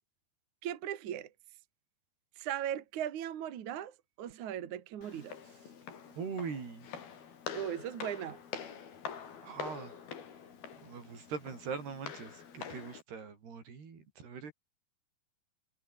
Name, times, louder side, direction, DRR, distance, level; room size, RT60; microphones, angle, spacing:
voice 1, 0.6-1.3 2.4-5.4 7.5-8.4, right 10 dB, 55° right, 2.9 m, -38 dB
Walk footsteps, 5.0-13.0, left 7 dB, 70° left, 5.4 m, -45 dB
voice 2, 6.2-6.9 9.4-9.9 10.8-14.5, right 5 dB, 85° right, 7.3 m, -42 dB
omnidirectional pair, 4.5 m